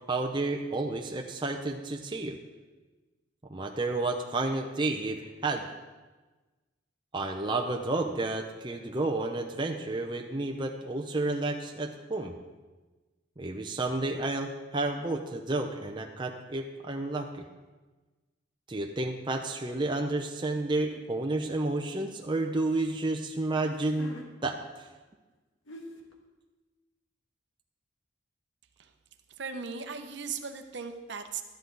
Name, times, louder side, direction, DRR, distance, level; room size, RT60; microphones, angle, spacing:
voice 1, 0.1-2.4 3.5-5.7 7.1-12.3 13.4-17.3 18.7-24.1 24.4-24.6, right 2 dB, 25° right, 2 dB, 0.6 m, -31 dB
sound 1, 20.9-21.1 21.7-23.0 23.6-24.3 25.3-25.4 25.7-26.1, equal, 75° left, 1.4 m, -46 dB
voice 2, 29.4-31.4, right 5 dB, 60° right, 6 dB, 0.8 m, -37 dB
12.5 x 10.5 x 3.9 m, 1.2 s
head